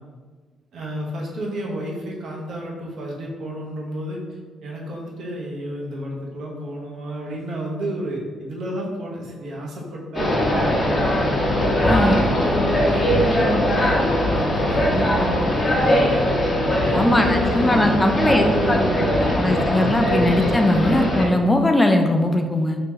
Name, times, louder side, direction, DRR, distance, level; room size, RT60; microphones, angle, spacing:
voice 1, 0.7-4.2 4.6-11.7 12.3-14.0 14.3-16.3 16.7-20.5, right 1 dB, 70° right, -2 dB, 0.8 m, -31 dB
sound 1, 10.1-21.2, left 1 dB, 35° left, 0.8 m, -20 dB
voice 2, 11.8-12.3 16.9-18.8 19.4-22.8, left 1 dB, 15° left, 4 dB, 0.3 m, -19 dB
2.9 x 2.9 x 3.7 m, 1.5 s
cardioid pair, 90°, 0 cm